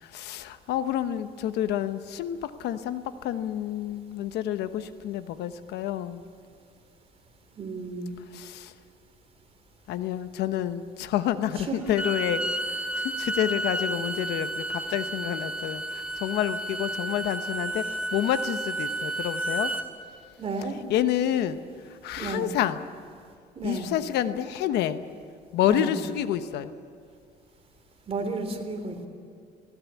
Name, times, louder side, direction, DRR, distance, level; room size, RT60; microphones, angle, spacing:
voice 1, 0.0-6.2 8.3-8.7 9.9-17.9 18.1-19.7 20.6-21.6 22.0-22.8 23.6-25.0 25.5-26.7, left 11 dB, 80° left, 11 dB, 1.0 m, -29 dB
voice 2, 7.6-8.1 11.7-11.9 20.4-20.8 22.2-22.5 23.6-23.9 25.6-26.0 28.1-29.1, right 3 dB, 35° right, 5 dB, 3.4 m, -32 dB
Bowed string instrument, 11.8-19.9, right 1 dB, 5° right, 1.9 m, -31 dB
20.5 x 17.0 x 8.4 m, 2.3 s
cardioid pair, 110°, 17 cm